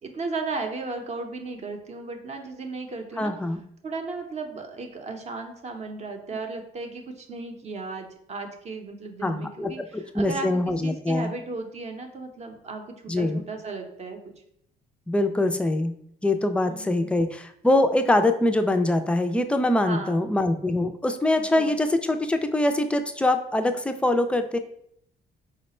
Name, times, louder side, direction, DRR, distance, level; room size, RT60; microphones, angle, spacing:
voice 1, 0.0-3.4 3.8-14.2 16.6-17.2 19.8-20.3 21.3-21.8, right 3 dB, 40° right, 4 dB, 0.7 m, -35 dB
voice 2, 3.2-3.6 9.2-11.3 13.1-13.4 15.1-15.9 16.2-24.6, left 1 dB, 5° left, 7 dB, 0.3 m, -23 dB
4.8 x 2.1 x 4.2 m, 0.71 s
cardioid pair, 110°, 17 cm